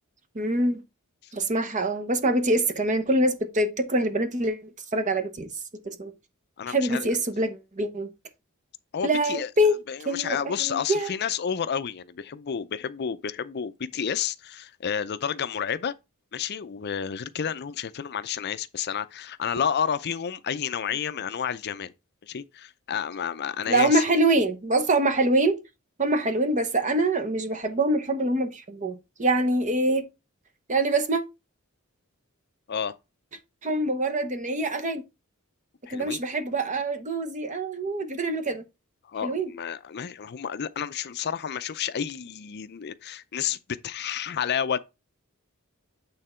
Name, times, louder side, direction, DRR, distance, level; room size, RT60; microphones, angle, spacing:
voice 1, 0.3-0.8 1.3-5.5 5.8-6.1 6.7-8.1 9.0-9.8 10.0-11.1 23.7-25.6 26.0-30.1 30.7-31.2 33.6-35.0 35.9-38.6 39.2-39.5, right 1 dB, 35° right, 0.9 m, -25 dB
voice 2, 6.6-7.1 8.9-9.5 9.9-15.9 16.3-21.9 22.2-24.0 32.7-33.0 35.9-36.2 39.0-44.8, left 8 dB, 50° left, 0.5 m, -30 dB
8.8 x 3.7 x 4.4 m
head